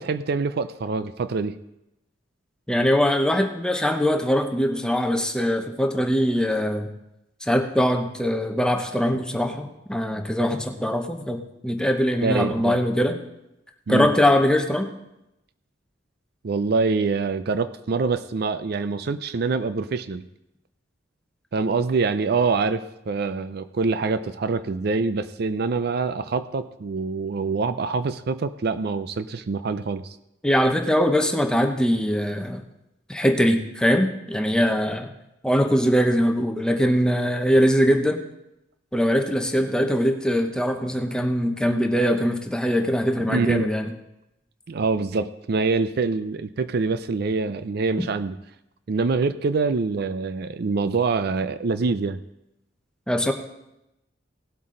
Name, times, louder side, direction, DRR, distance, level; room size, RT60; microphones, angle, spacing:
voice 1, 0.0-1.6 12.2-12.7 13.9-14.1 16.4-20.2 21.5-30.2 43.3-43.7 44.7-48.4 48.9-52.2, right 4 dB, 55° right, 12 dB, 0.4 m, -25 dB
voice 2, 2.7-6.9 7.4-13.2 13.9-14.9 30.4-32.6 33.1-35.1 35.4-38.2 38.9-43.9 53.1-53.3, equal, 5° left, 5 dB, 0.8 m, -22 dB
18.0 x 8.0 x 3.8 m, 0.88 s
head